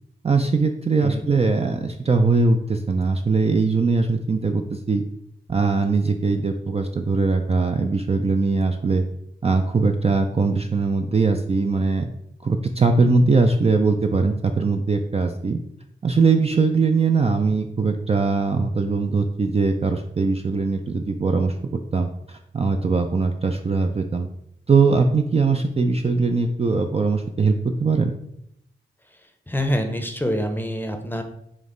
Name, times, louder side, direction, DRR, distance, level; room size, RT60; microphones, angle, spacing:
voice 1, 0.2-5.0 5.5-9.0 9.4-12.1 12.4-15.6 16.0-24.3 24.7-28.1, right 4 dB, 30° right, 4 dB, 0.4 m, -21 dB
voice 2, 29.5-31.2, equal, 10° left, 5 dB, 0.7 m, -25 dB
5.2 x 2.0 x 3.8 m, 0.75 s
cardioid pair, 40°, 21 cm